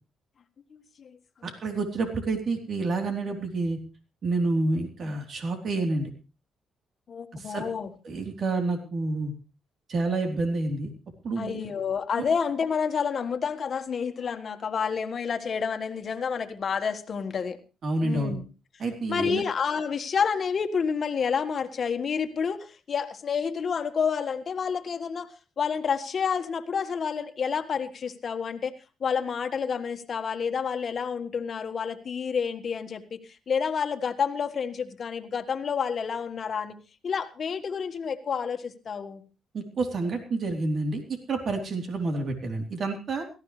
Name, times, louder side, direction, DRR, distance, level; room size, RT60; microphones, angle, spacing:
voice 1, 0.7-1.2 5.1-5.2 7.1-7.9 11.4-17.6 18.0-18.4 19.1-25.3 25.6-28.7 29.0-33.2 33.5-36.8 37.0-39.2, left 6 dB, 50° left, 8 dB, 1.6 m, -29 dB
voice 2, 1.4-3.8 4.2-6.1 7.3-7.6 8.0-9.3 9.9-10.9 11.2-11.6 17.8-18.4 18.8-19.4 39.5-41.0 41.3-43.2, right 3 dB, 55° right, 5 dB, 3.6 m, -28 dB
17.5 x 14.5 x 3.3 m, 0.31 s
cardioid pair, 90°, 0 cm